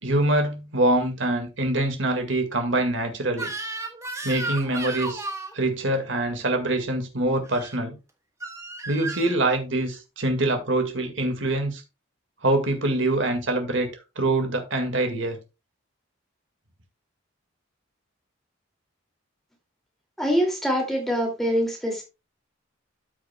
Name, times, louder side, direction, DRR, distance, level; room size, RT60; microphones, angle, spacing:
voice 1, 0.0-3.5 4.2-5.2 5.5-7.9 8.9-11.8 12.4-13.9 14.2-15.4, right 2 dB, 65° right, 1.9 m, -24 dB
Crying sobbing / Screech, 3.3-5.5 7.4-7.8 8.4-9.4, right 2 dB, 15° right, 1.2 m, -33 dB
voice 2, 20.2-22.0, equal, ahead, 2.4 m, -24 dB
13.0 x 6.4 x 2.3 m
head